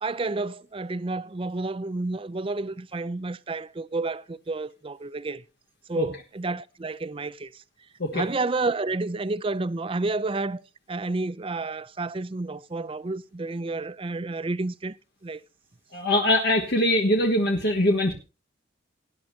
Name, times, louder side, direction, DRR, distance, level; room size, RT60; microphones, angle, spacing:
voice 1, 0.0-5.4 5.9-7.6 8.1-10.6 10.9-15.0 15.2-15.4, right 3 dB, 25° right, 0.5 m, -30 dB
voice 2, 15.9-18.1, left 1 dB, 55° left, 1.5 m, -22 dB
18.5 x 10.0 x 2.8 m
head